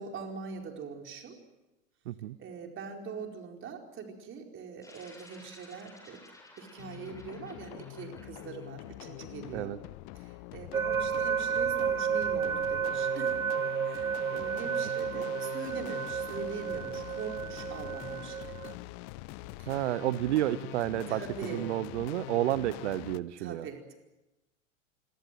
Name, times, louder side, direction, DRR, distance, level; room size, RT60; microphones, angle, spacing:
voice 1, 0.0-1.4 2.4-6.2 6.6-9.8 10.1-13.3 13.8-18.6 19.6-19.7 21.1-21.7 23.4-24.0, right 5 dB, 30° right, 3 dB, 4.7 m, -42 dB
voice 2, 2.1-2.4 9.5-9.8 19.7-21.2 21.5-23.7, right 14 dB, 60° right, 17 dB, 0.9 m, -30 dB
sound 1, 4.8-9.5, left 2 dB, 10° left, 7.6 m, -55 dB
sound 2, 6.8-23.2, left 19 dB, 40° left, 0.9 m, -44 dB
sound 3, 10.7-18.7, right 7 dB, 85° right, 1.0 m, -32 dB
27.0 x 22.5 x 7.7 m, 1.0 s
figure-of-eight pair, 85°, 40 cm